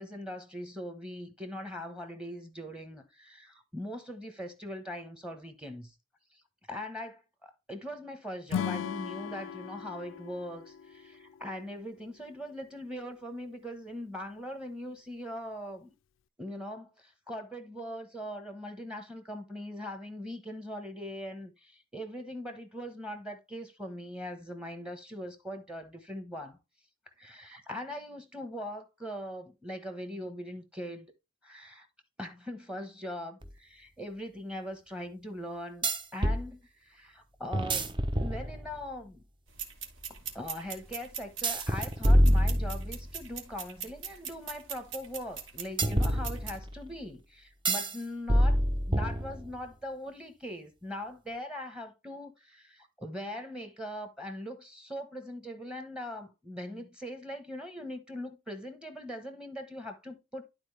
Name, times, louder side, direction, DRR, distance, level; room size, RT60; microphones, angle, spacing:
voice 1, 0.0-5.9 6.3-6.4 6.7-15.9 16.4-26.6 27.2-31.1 31.4-31.9 32.2-39.2 40.1-48.6 48.9-60.4, left 1 dB, 5° right, 1.1 m, -41 dB
Acoustic guitar / Strum, 8.5-11.8, left 8 dB, 65° left, 0.3 m, -37 dB
sound 1, 33.4-33.5 35.8-36.4 37.5-38.8 41.4-43.1 45.8-46.8 47.7-48.0 48.3-49.6, equal, 25° right, 0.8 m, -26 dB
sound 2, 39.5-46.6, right 7 dB, 65° right, 2.3 m, -42 dB
11.5 x 4.2 x 3.3 m
head